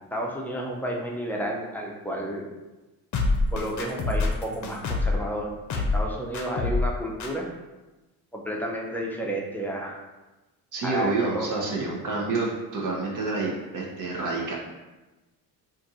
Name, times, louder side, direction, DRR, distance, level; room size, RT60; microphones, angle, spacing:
voice 1, 0.1-2.5 3.5-7.5 8.3-10.0 10.8-11.5, right 1 dB, 5° left, -2 dB, 0.5 m, -31 dB
sound 1, 3.1-5.2 5.7-6.1 6.3-6.9 7.2-7.3, left 3 dB, 50° left, 0.6 m, -25 dB
voice 2, 10.7-14.5, right 3 dB, 55° right, -2 dB, 0.8 m, -28 dB
2.6 x 2.5 x 4.0 m, 1.1 s
cardioid pair, 95°, 37 cm